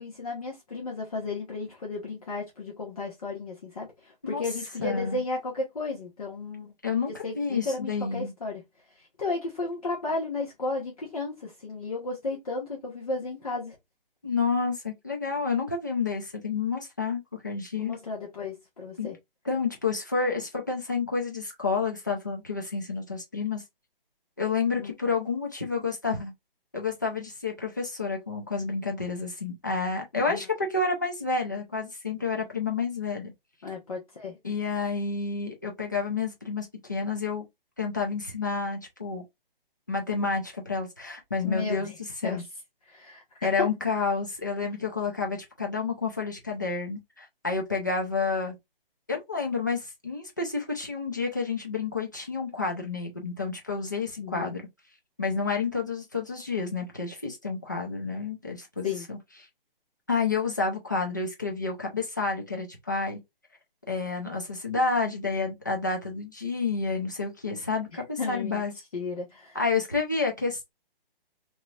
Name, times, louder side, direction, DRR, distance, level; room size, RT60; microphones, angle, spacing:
voice 1, 0.0-6.7 7.2-8.6 9.2-13.7 17.8-19.2 24.8-24.9 30.1-30.4 33.6-34.4 41.4-42.0 42.2-42.4 42.9-43.7 54.2-54.6 58.8-59.1 68.2-68.6 68.9-69.6, left 3 dB, 40° left, 1.1 m, -33 dB
voice 2, 4.8-5.2 6.8-8.3 14.2-17.9 19.0-19.1 19.5-23.6 24.4-26.3 26.7-33.3 34.4-37.5 37.8-39.2 39.9-41.9 42.2-42.4 43.4-48.5 49.1-54.6 55.2-59.2 60.1-63.2 63.9-68.7 69.5-70.7, left 4 dB, 20° left, 0.5 m, -29 dB
3.0 x 3.0 x 2.3 m
hypercardioid pair, 175°, 29 cm